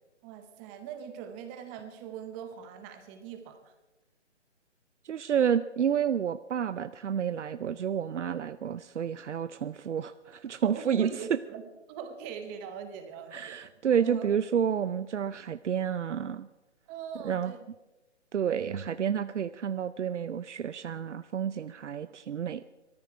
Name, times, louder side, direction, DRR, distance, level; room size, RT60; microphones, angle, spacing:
voice 1, 0.2-3.7 9.0-9.1 10.6-11.6 11.9-13.6 14.0-14.3 16.9-17.6, right 7 dB, 10° right, 8 dB, 0.7 m, -41 dB
voice 2, 5.0-11.1 13.3-16.5 17.2-17.5 18.3-22.6, right 8 dB, 75° right, 13 dB, 0.6 m, -30 dB
19.0 x 13.5 x 4.6 m, 1.1 s
hypercardioid pair, 145°, 36 cm